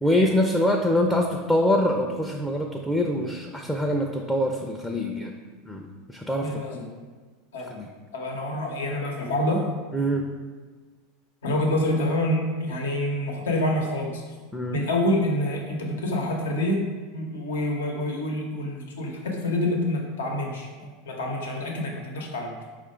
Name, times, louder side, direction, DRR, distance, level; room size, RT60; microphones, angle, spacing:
voice 1, 0.0-5.3 5.6-6.8 7.7-7.9 9.9-10.3 14.5-14.8, left 1 dB, 5° left, 1 dB, 0.4 m, -24 dB
voice 2, 6.4-6.9 7.5-7.7 8.1-9.7 11.4-14.2 14.7-16.8 17.1-22.5, left 1 dB, 90° left, 0 dB, 0.8 m, -27 dB
4.6 x 2.5 x 4.3 m, 1.4 s
hypercardioid pair, 105°, 0 cm